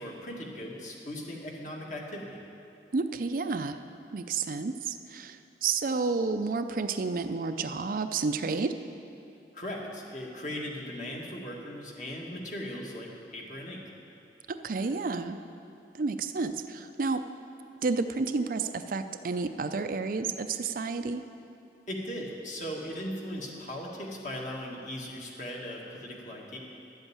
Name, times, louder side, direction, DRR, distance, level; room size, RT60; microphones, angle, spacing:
voice 1, 0.0-2.4 9.5-13.8 21.9-26.6, equal, 45° left, -1 dB, 1.8 m, -38 dB
voice 2, 2.9-3.8 4.1-8.7 14.5-15.4 15.9-17.3 17.8-21.2, right 4 dB, 50° right, 9 dB, 0.4 m, -30 dB
12.0 x 8.0 x 8.7 m, 2.7 s
head